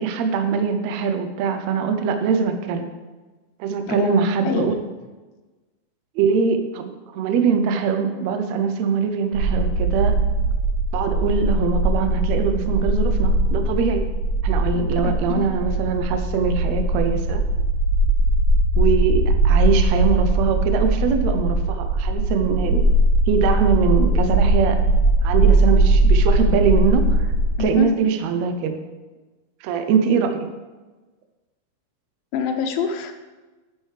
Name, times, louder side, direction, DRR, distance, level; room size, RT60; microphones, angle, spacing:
voice 1, 0.0-2.9 3.6-4.7 6.1-10.2 10.9-14.0 14.4-17.4 18.8-22.9 23.3-24.8 25.2-27.3 27.6-28.8 29.6-30.5, right 6 dB, 85° right, 6 dB, 1.5 m, -22 dB
voice 2, 3.9-4.8 14.7-15.5 27.6-27.9 32.3-33.1, left 6 dB, 85° left, 5 dB, 2.6 m, -26 dB
sound 1, 9.3-27.6, right 1 dB, 70° right, 2.1 m, -20 dB
9.0 x 8.9 x 3.3 m, 1.2 s
omnidirectional pair, 4.1 m